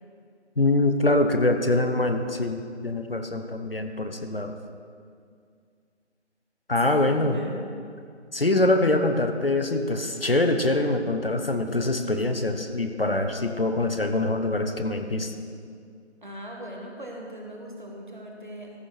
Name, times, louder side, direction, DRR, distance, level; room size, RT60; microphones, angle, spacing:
voice 1, 0.6-4.5 6.7-7.4 8.3-15.3, left 2 dB, 55° left, 6 dB, 0.8 m, -24 dB
voice 2, 6.8-7.6 16.2-18.7, equal, 45° right, 0 dB, 1.6 m, -39 dB
14.0 x 7.1 x 4.5 m, 2.2 s
figure-of-eight pair, 165°, 35 cm